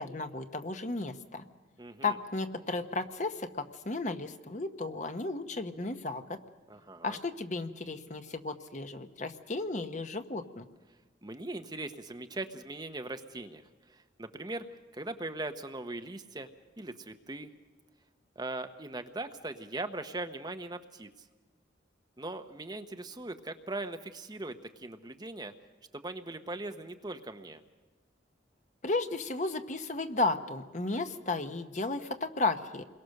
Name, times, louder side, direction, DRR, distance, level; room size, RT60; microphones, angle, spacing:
voice 1, 0.0-1.4 2.0-6.4 7.0-10.6 28.8-32.8, left 3 dB, 40° left, 8 dB, 1.0 m, -34 dB
voice 2, 1.8-2.2 6.7-7.2 11.2-14.7 14.9-16.5 16.8-17.5 18.4-21.1 22.2-25.5 25.9-27.6, right 2 dB, 20° right, 7 dB, 0.9 m, -40 dB
28.0 x 22.0 x 6.5 m, 1.3 s
head